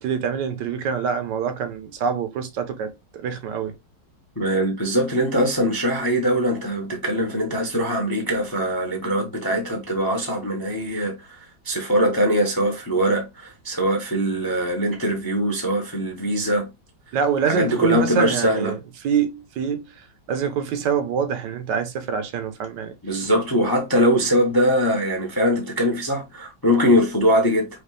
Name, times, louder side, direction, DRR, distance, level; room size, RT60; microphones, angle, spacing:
voice 1, 0.0-3.7 17.1-18.8 19.0-22.9, right 7 dB, 70° right, 1.3 m, -25 dB
voice 2, 4.4-16.7 17.1-17.2 17.5-18.7 23.0-27.7, equal, 20° left, 0.6 m, -22 dB
5.0 x 2.4 x 3.2 m
omnidirectional pair, 2.0 m